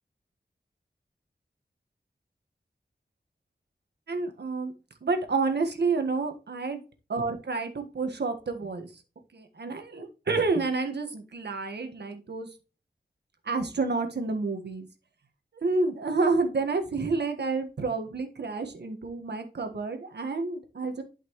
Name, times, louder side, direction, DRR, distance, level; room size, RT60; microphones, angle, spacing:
voice 1, 4.1-4.7 5.0-6.8 7.1-9.0 9.3-12.5 13.4-14.9 15.6-21.0, right 3 dB, 85° right, 6 dB, 1.6 m, -29 dB
11.5 x 5.9 x 3.1 m, 0.33 s
wide cardioid pair, 95°, 17 cm